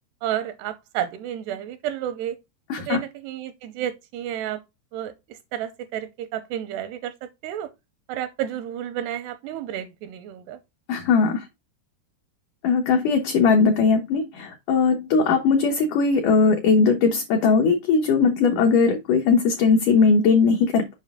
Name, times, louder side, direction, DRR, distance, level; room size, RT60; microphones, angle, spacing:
voice 1, 0.2-2.4 2.9-4.6 4.9-7.1 7.4-7.7 8.1-10.6, right 11 dB, 85° right, 2.8 m, -31 dB
voice 2, 10.9-11.4 12.6-21.0, left 5 dB, 70° left, 2.1 m, -19 dB
7.5 x 5.6 x 3.6 m
omnidirectional pair, 4.8 m